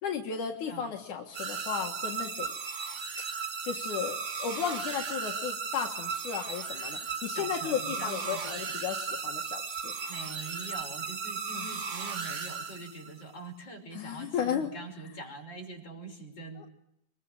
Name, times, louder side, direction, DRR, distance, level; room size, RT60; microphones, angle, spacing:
voice 1, 0.0-2.5 3.6-9.9 11.6-11.7 13.9-14.7 16.6-16.7, left 7 dB, 75° left, 2 dB, 3.1 m, -34 dB
sound 1, 1.3-13.2, right 5 dB, 75° right, 0.6 m, -36 dB
voice 2, 7.3-8.8 10.1-16.7, right 3 dB, 35° left, 1 dB, 6.6 m, -44 dB
26.0 x 22.0 x 9.0 m, 0.79 s
omnidirectional pair, 3.5 m